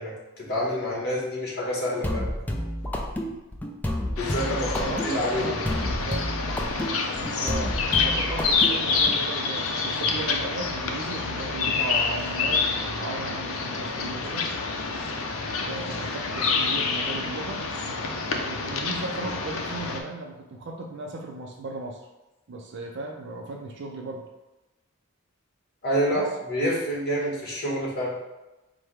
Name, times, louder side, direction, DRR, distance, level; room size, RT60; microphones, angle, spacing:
voice 1, 0.0-2.3 4.1-5.6 25.8-26.2 26.5-28.2, equal, 50° left, -3 dB, 1.2 m, -28 dB
sound 1, 2.0-9.2, left 1 dB, 10° left, 0.4 m, -30 dB
sound 2, 4.2-20.0, left 4 dB, 80° left, 0.5 m, -28 dB
voice 2, 4.7-6.3 7.4-14.5 15.7-17.6 18.4-22.1 22.5-24.3 26.1-26.3, right 2 dB, 60° right, 2 dB, 0.4 m, -36 dB
4.7 x 2.1 x 4.6 m, 1.0 s
head